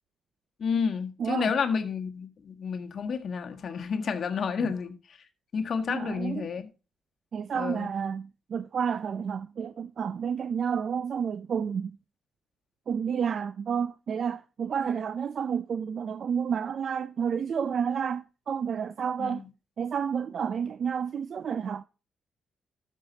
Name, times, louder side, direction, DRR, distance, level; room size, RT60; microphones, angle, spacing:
voice 1, 0.6-5.2 5.5-6.7 7.5-7.9 19.2-19.4, left 6 dB, 55° left, 1.5 m, -30 dB
voice 2, 1.2-1.5 4.6-4.7 5.9-6.5 7.3-12.0 12.9-19.4 19.8-21.8, right 7 dB, 55° right, 0.4 m, -30 dB
13.0 x 6.6 x 4.0 m
cardioid pair, 85°, 0 cm